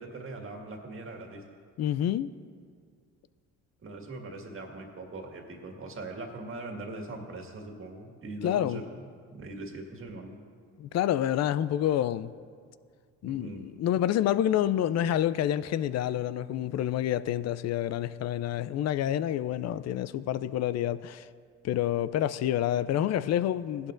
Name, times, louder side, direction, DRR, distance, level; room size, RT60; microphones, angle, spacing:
voice 1, 0.0-1.4 3.8-9.0 9.3-10.4 13.3-13.6, right 2 dB, 40° right, 1.9 m, -41 dB
voice 2, 1.8-2.3 8.4-8.8 10.8-12.3 13.2-21.3 21.6-23.9, left 11 dB, 55° left, 0.4 m, -28 dB
16.0 x 11.5 x 2.6 m
supercardioid pair, 75°, 33 cm